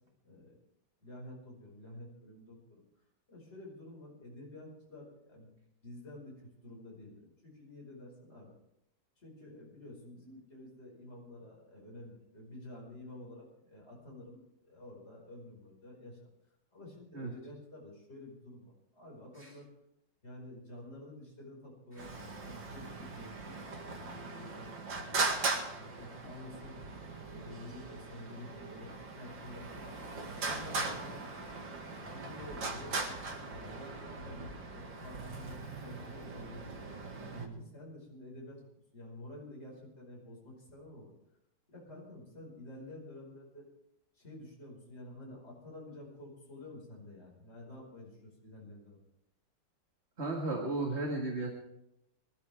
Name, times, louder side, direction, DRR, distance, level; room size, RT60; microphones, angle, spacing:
voice 1, 0.2-0.6 1.0-2.8 3.3-5.5 5.8-6.3 6.6-8.5 9.2-16.2 16.7-19.7 20.2-23.6 24.0-24.7 25.0-25.3 25.8-26.8 27.3-30.0 30.4-31.6 32.1-36.8 37.2-38.6 38.9-41.1 41.7-43.7 44.1-49.0, left 1 dB, 35° left, -2 dB, 5.4 m, -50 dB
Traffic noise roadway noise, 22.0-37.5, right 3 dB, 75° right, 2.8 m, -39 dB
voice 2, 50.2-51.5, right 2 dB, 35° right, 1 dB, 2.2 m, -35 dB
24.0 x 13.5 x 3.5 m, 0.80 s
omnidirectional pair, 2.1 m